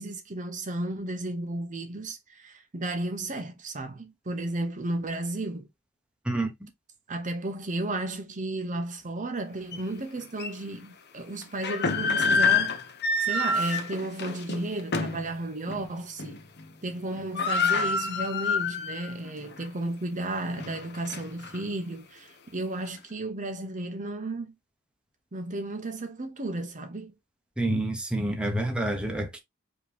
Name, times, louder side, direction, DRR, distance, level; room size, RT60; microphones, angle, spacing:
voice 1, 0.0-5.7 7.1-12.8 13.2-16.4 16.8-24.5 25.3-27.1, right 2 dB, 40° right, 0.8 m, -33 dB
sound 1, 9.7-9.8 10.4-10.5 11.4-15.3 15.7-15.9 16.2-16.6 16.9-17.0 17.1-19.1 19.5-19.6 20.2-21.6, left 4 dB, 50° left, 0.9 m, -27 dB
voice 2, 27.6-29.4, right 1 dB, 5° right, 1.0 m, -28 dB
4.9 x 3.0 x 3.4 m
head